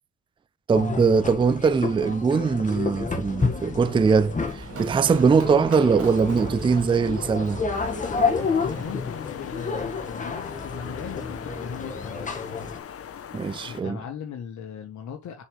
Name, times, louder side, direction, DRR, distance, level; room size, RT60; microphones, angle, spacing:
sound 1, 0.7-12.8, left 4 dB, 25° left, 1.8 m, -30 dB
voice 1, 0.7-7.6 13.3-14.0, right 5 dB, 15° right, 0.4 m, -21 dB
Run, 3.3-8.9, right 4 dB, 50° right, 1.7 m, -40 dB
sound 2, 7.7-13.8, left 8 dB, 50° left, 1.0 m, -40 dB
voice 2, 8.6-12.5 13.6-15.4, left 8 dB, 70° left, 1.5 m, -38 dB
7.0 x 4.9 x 3.3 m
cardioid pair, 90°, 30 cm